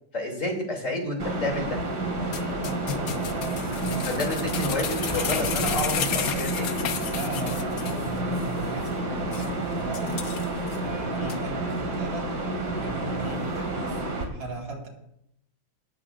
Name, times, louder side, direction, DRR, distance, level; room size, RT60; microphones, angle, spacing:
voice 1, 0.1-1.8 4.0-6.8 11.1-11.3 13.2-13.4, left 1 dB, 40° left, 1 dB, 3.3 m, -30 dB
sound 1, 1.2-14.3, right 2 dB, 60° right, 2.7 m, -30 dB
sound 2, 2.3-8.1 8.3-8.4 8.9-9.0 9.3-9.5 9.9-10.8 11.3-11.4, left 8 dB, 60° left, 1.1 m, -32 dB
voice 2, 2.8-4.1 7.1-10.2 10.6-12.3 12.7-14.9, right 2 dB, 75° right, -1 dB, 3.0 m, -37 dB
Gurgling, 4.9-7.1, right 1 dB, 15° right, 1.6 m, -38 dB
17.5 x 14.5 x 2.5 m, 0.81 s
omnidirectional pair, 2.1 m